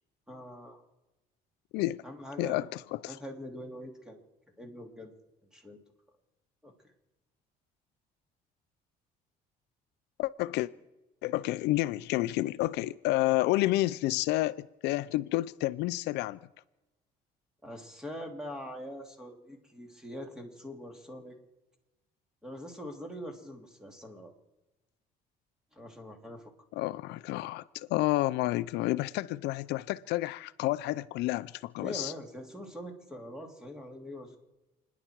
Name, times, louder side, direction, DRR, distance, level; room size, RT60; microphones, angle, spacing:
voice 1, 0.3-0.8 2.0-2.7 3.1-4.2 4.6-5.1 5.5-5.8 6.6-6.7 17.6-21.4 22.4-24.4 25.7-26.5 31.8-34.4, equal, 5° right, 2.9 m, -43 dB
voice 2, 2.4-3.2 10.2-10.7 11.2-16.4 26.7-32.1, left 17 dB, 90° left, 0.5 m, -30 dB
29.5 x 10.5 x 4.6 m
cardioid pair, 110°, 17 cm